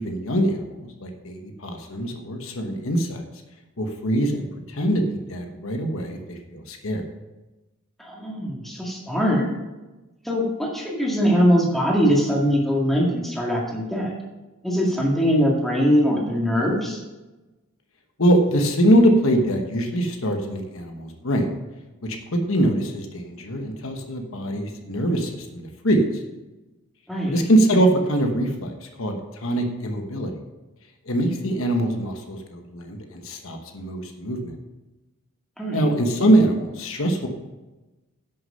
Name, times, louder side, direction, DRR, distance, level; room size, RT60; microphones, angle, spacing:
voice 1, 0.0-3.2 3.8-7.0 18.2-21.5 22.3-26.0 27.3-30.3 31.1-34.5 35.7-37.3, right 1 dB, 65° left, 4 dB, 1.2 m, -23 dB
voice 2, 8.0-9.5 10.3-14.2 14.6-17.0 27.1-27.4 35.6-35.9, equal, ahead, -3 dB, 1.9 m, -22 dB
10.5 x 6.4 x 5.6 m, 1.1 s
head